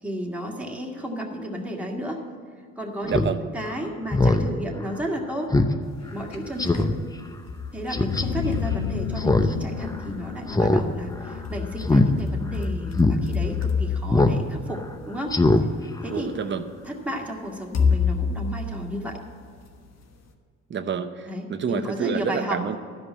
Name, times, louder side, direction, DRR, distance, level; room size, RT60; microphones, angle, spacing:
voice 1, 0.0-2.2 2.8-5.5 6.1-6.9 7.7-15.7 16.0-16.3 16.8-19.2 21.3-22.6, equal, 5° right, -1 dB, 2.0 m, -33 dB
voice 2, 3.0-3.4 16.1-16.6 20.7-22.8, right 6 dB, 40° right, 9 dB, 0.8 m, -28 dB
Speech synthesizer, 3.1-3.3 3.7-3.8 4.1-4.5 4.9-5.0 5.5-5.7 6.1-6.2 6.6-6.9 7.9-8.2 9.2-9.5 9.8-9.9 10.5-10.8 11.1-11.4 11.8-12.1 12.5-12.6 12.9-13.2 14.1-14.4 14.7-14.8 15.3-15.6 16.0-16.1, left 2 dB, 10° left, 0.7 m, -20 dB
sound 1, 6.0-7.0 7.5-9.9 11.0-15.5 16.3-16.4 17.7-19.6, left 5 dB, 60° left, 1.3 m, -29 dB
sound 2, 8.0-13.5, left 8 dB, 90° left, 0.7 m, -34 dB
12.5 x 5.3 x 8.3 m, 2.1 s
cardioid pair, 90°, 30 cm